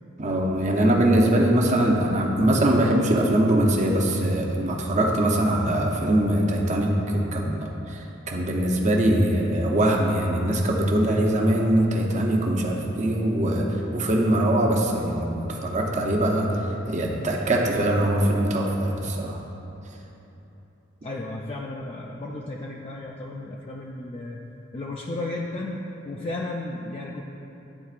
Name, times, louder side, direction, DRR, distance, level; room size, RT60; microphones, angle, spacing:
voice 1, 0.2-16.5 16.9-19.4, right 1 dB, 35° right, 0 dB, 0.7 m, -22 dB
voice 2, 21.0-24.4 24.7-27.2, left 2 dB, 30° left, -2 dB, 0.3 m, -34 dB
11.0 x 4.2 x 2.4 m, 3.0 s
head